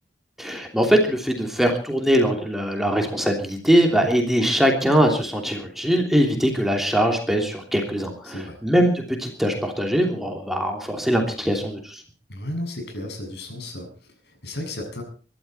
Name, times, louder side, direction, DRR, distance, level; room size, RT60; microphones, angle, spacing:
voice 1, 0.4-12.0, equal, ahead, 2 dB, 3.1 m, -22 dB
voice 2, 8.2-8.6 12.3-15.0, left 1 dB, 70° left, 5 dB, 7.4 m, -34 dB
25.0 x 12.5 x 4.4 m, 0.39 s
head